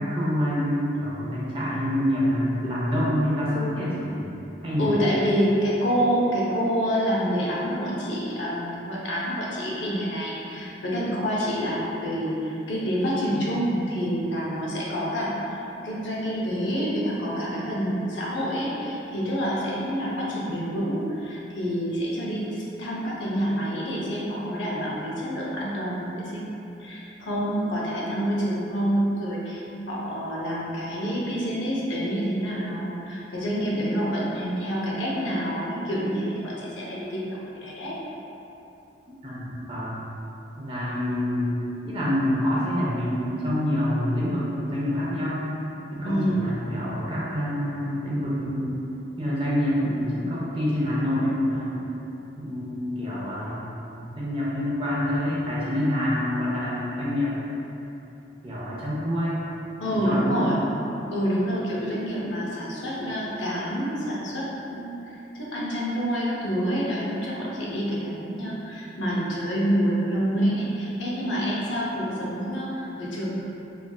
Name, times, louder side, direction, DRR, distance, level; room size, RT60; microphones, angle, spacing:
voice 1, 0.0-4.3 4.6-4.9 39.2-40.0 40.5-41.5 41.8-45.5 45.9-48.8 49.2-51.8 52.4-53.6 54.0-57.3 58.4-59.4 59.9-60.6, equal, 30° right, -7 dB, 0.5 m, -26 dB
voice 2, 4.8-37.9 46.0-46.4 59.8-60.6 61.1-64.4 64.7-73.3, equal, 85° left, -5 dB, 0.6 m, -27 dB
3.1 x 2.4 x 2.2 m, 3.0 s
head